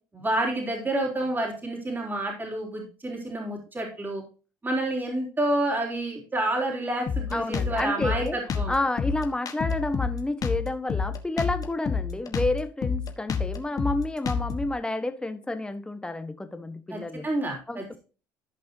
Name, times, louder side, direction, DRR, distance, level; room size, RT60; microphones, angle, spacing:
voice 1, 0.1-4.2 4.6-8.7 16.9-18.0, right 1 dB, 20° right, 3.7 m, -29 dB
Drum kit, 7.1-14.7, left 6 dB, 40° left, 1.5 m, -29 dB
voice 2, 7.3-8.4 8.7-17.3 17.7-18.0, left 2 dB, 10° left, 1.3 m, -30 dB
14.5 x 5.5 x 2.8 m
supercardioid pair, 85°, 9 cm